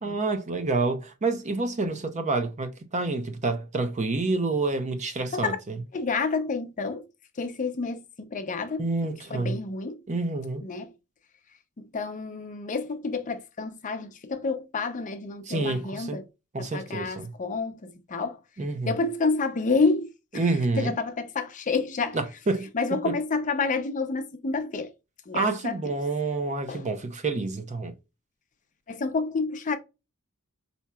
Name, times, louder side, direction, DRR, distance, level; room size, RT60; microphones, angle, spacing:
voice 1, 0.0-5.8 8.8-9.6 10.1-10.6 15.5-16.2 16.5-17.3 18.6-19.0 20.3-20.9 22.1-22.7 23.0-23.1 25.3-27.9, right 3 dB, 35° right, 0.6 m, -28 dB
voice 2, 5.9-7.0 7.4-8.9 9.3-10.0 10.6-10.9 11.8-16.2 16.6-18.4 18.8-22.2 22.7-24.9 25.3-25.8 26.7-26.8 28.9-29.8, left 4 dB, 35° left, 0.5 m, -29 dB
4.3 x 2.7 x 2.2 m
head